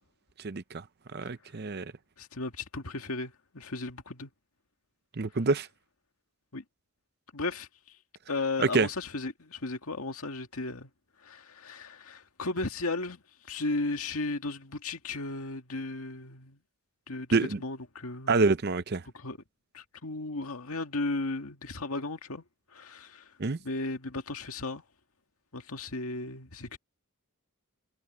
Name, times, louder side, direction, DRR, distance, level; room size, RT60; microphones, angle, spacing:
voice 1, 0.4-0.8 1.1-1.9 5.2-5.7 8.7-8.9 17.3-17.6 18.3-19.0 23.4-23.6, right 3 dB, 45° right, 0.6 m, -26 dB
voice 2, 2.2-4.3 6.5-6.6 7.3-7.7 8.3-10.9 11.2-16.6 17.1-18.4 19.1-19.4 19.7-22.4 22.7-23.3 23.6-24.8 25.5-26.8, left 2 dB, 75° left, 2.0 m, -35 dB
head